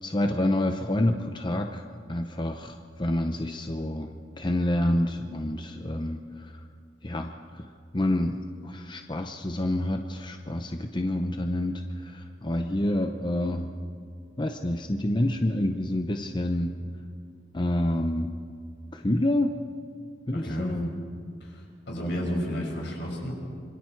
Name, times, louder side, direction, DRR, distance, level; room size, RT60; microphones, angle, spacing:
voice 1, 0.0-6.6 7.0-13.7 14.4-16.7 17.5-18.3 18.9-19.5 20.3-20.9 22.0-22.4, left 1 dB, 25° left, 5 dB, 0.8 m, -28 dB
voice 2, 20.3-20.8 21.4-23.3, equal, 70° left, -1 dB, 6.0 m, -33 dB
26.5 x 24.0 x 4.6 m, 2.2 s
head